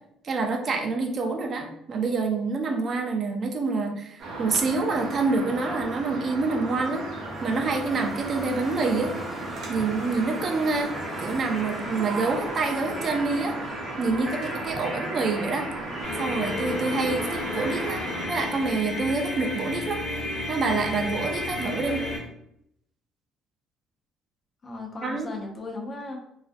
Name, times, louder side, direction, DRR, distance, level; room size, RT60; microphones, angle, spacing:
voice 1, 0.2-7.1 7.4-9.1 9.7-13.7 14.0-15.7 16.2-18.0 18.3-20.0 20.5-22.0 25.0-25.3, right 3 dB, 35° right, 3 dB, 0.3 m, -27 dB
sound 1, 4.2-18.3, right 2 dB, 60° right, 0.8 m, -35 dB
sound 2, 6.9-19.8, equal, 10° left, 1.0 m, -40 dB
sound 3, 16.0-22.2, left 2 dB, 60° left, 0.9 m, -32 dB
voice 2, 21.7-22.2 24.6-26.2, left 2 dB, 30° left, 2 dB, 0.5 m, -37 dB
2.4 x 2.2 x 2.4 m, 0.78 s
cardioid pair, 145°, 0 cm